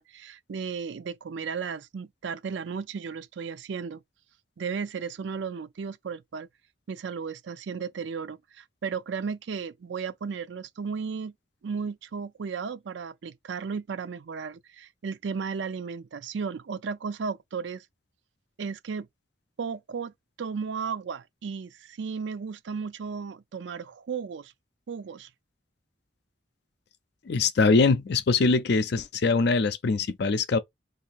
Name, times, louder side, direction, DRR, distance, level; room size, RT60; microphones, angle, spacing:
voice 1, 0.0-4.0 4.6-6.5 6.9-11.3 11.6-17.8 18.6-19.1 19.6-20.1 20.4-24.5 24.9-25.3, right 5 dB, 75° right, 0.4 m, -34 dB
voice 2, 27.3-30.6, left 4 dB, 60° left, 0.5 m, -23 dB
2.7 x 2.6 x 4.2 m
head